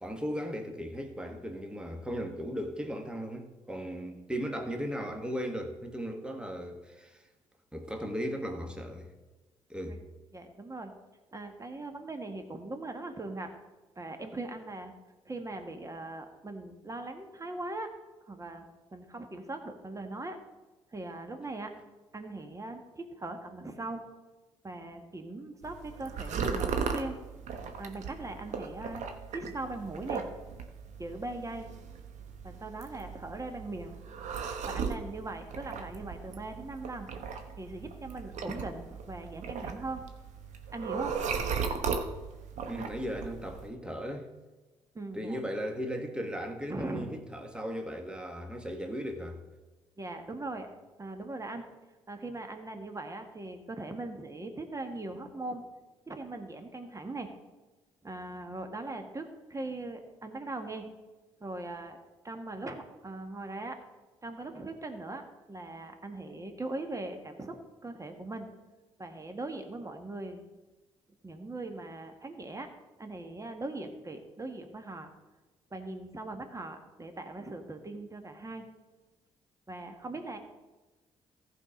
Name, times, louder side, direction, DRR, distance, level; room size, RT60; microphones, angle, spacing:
voice 1, 0.0-7.3 7.7-9.1 9.7-10.0 42.7-44.3 45.1-49.4, equal, 5° right, 1.5 m, -37 dB
voice 2, 10.3-10.9 11.3-13.5 13.9-14.9 15.2-17.9 18.3-20.4 20.9-21.7 22.1-24.0 24.6-27.2 27.8-30.2 31.0-31.7 32.4-33.9 34.7-37.1 37.6-40.0 40.7-41.3 44.9-45.4 46.7-47.1 50.0-50.7 51.0-51.6 52.1-55.6 56.1-57.3 58.0-60.9 61.4-62.0 62.2-63.8 64.2-68.5 69.0-70.4 71.2-72.7 73.0-75.1 75.7-78.6 79.7-80.4, right 2 dB, 25° right, 1.6 m, -40 dB
sound 1, 25.6-43.7, right 6 dB, 70° right, 1.1 m, -37 dB
14.5 x 5.0 x 5.1 m
hypercardioid pair, 50°, 13 cm